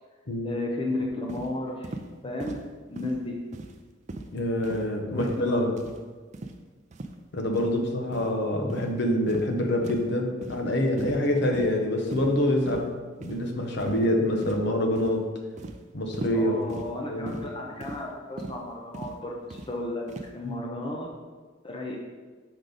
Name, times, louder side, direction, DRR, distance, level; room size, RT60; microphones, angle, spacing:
voice 1, 0.4-2.0 2.2-2.6 2.9-3.4 5.1-5.6 16.3-20.0 20.3-21.1 21.6-22.0, left 2 dB, 25° left, 0 dB, 0.6 m, -33 dB
sound 1, 1.3-1.5 1.8-2.1 2.4-2.6 3.0-3.2 3.5-3.8 4.1-4.3 4.6-4.9 5.2-5.4 5.8-6.0 6.3-6.6 6.9-7.1 7.5-7.7 8.1-8.3 8.7-8.9 9.3-9.5 9.8-10.1 10.4-10.6 11.0-11.3 11.5-11.7 12.1-12.4 12.7-12.9 13.2-13.4 13.8-14.1 14.4-14.7 15.0-15.2 15.6-15.8 16.1-16.4 16.7-16.9 17.3-17.5 17.8-18.0 18.4-18.6 18.9-19.1 19.5-19.7 20.1-20.3, right 2 dB, 35° right, 0.5 m, -38 dB
voice 2, 4.3-5.7 7.3-12.9 13.2-15.2 15.9-16.5 17.1-17.4, left 1 dB, 60° left, 3 dB, 0.8 m, -26 dB
6.2 x 5.0 x 4.0 m, 1.4 s
head